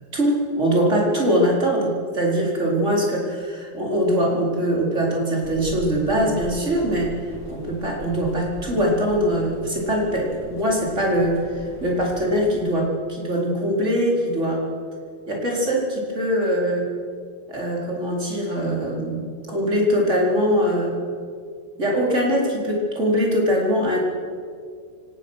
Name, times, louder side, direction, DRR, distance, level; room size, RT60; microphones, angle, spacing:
voice 1, 0.1-7.1 7.5-14.6 15.3-16.9 17.5-21.0 21.8-24.0, equal, 35° right, -2 dB, 4.8 m, -22 dB
sound 1, 5.4-12.6, equal, 70° left, 4.9 m, -40 dB
24.0 x 18.0 x 6.5 m, 2.1 s
omnidirectional pair, 2.2 m